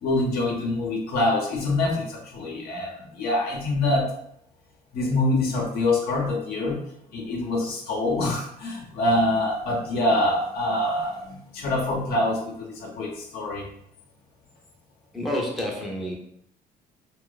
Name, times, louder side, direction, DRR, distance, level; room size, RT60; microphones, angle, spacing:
voice 1, 0.0-4.1 4.9-6.8 7.1-13.7, left 2 dB, 65° left, 0 dB, 0.7 m, -25 dB
voice 2, 15.1-16.1, left 1 dB, ahead, -2 dB, 0.5 m, -29 dB
2.7 x 2.2 x 2.2 m, 0.71 s
cardioid pair, 110°, 17 cm